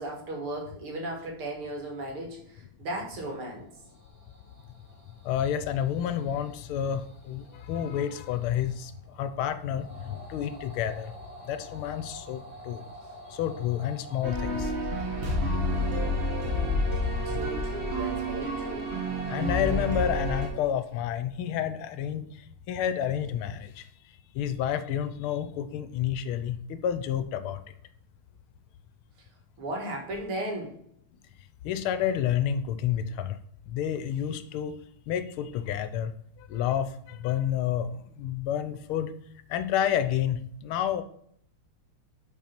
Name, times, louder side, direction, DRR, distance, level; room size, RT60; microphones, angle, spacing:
voice 1, 0.0-3.7 17.3-18.9 29.6-30.7, right 1 dB, 75° right, 0 dB, 2.5 m, -36 dB
sound 1, 3.4-19.8, right 1 dB, 15° right, 2.7 m, -48 dB
voice 2, 5.2-11.1 11.4-12.8 13.3-14.7 17.3-17.4 19.3-22.3 22.7-23.9 24.3-27.6 31.6-33.4 33.7-34.8 35.1-36.1 36.4-39.1 39.5-41.0, left 9 dB, 80° left, 11 dB, 1.5 m, -30 dB
sound 2, 14.2-20.5, left 1 dB, 35° right, 1.3 m, -29 dB
5.9 x 4.2 x 5.8 m, 0.65 s
omnidirectional pair, 2.4 m